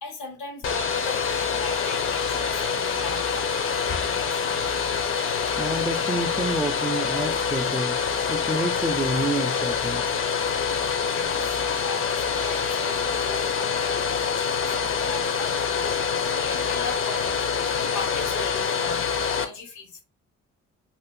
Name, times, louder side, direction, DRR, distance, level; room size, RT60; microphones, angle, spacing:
voice 1, 0.0-4.7 11.1-11.4 11.8-20.0, left 4 dB, 80° left, 1.3 m, -39 dB
Domestic sounds home sounds, 0.6-19.4, left 6 dB, 45° left, 0.6 m, -26 dB
voice 2, 5.6-8.0 8.3-10.1, right 1 dB, 5° right, 0.4 m, -29 dB
2.6 x 2.4 x 3.7 m
cardioid pair, 90°, 30 cm